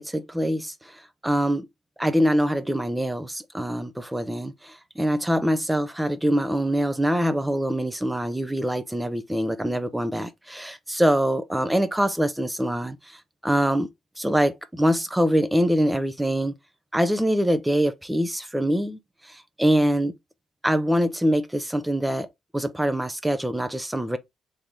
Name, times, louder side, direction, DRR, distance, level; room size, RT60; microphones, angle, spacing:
voice 1, 0.0-1.7 2.0-13.9 14.2-16.5 16.9-20.1 20.6-22.3 22.5-24.2, equal, 5° right, 0.5 m, -24 dB
3.4 x 2.9 x 2.5 m
cardioid pair, 90°, 0 cm